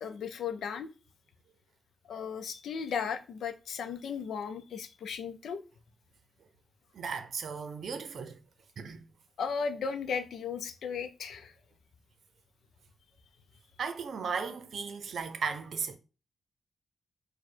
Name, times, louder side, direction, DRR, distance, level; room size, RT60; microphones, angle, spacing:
voice 1, 0.0-0.9 2.1-5.6 9.4-11.5, left 6 dB, 85° left, 0.5 m, -35 dB
voice 2, 6.9-8.3 8.8-9.0 13.8-16.0, right 5 dB, 65° right, 0.6 m, -36 dB
4.8 x 2.2 x 4.4 m
wide cardioid pair, 135°, 0 cm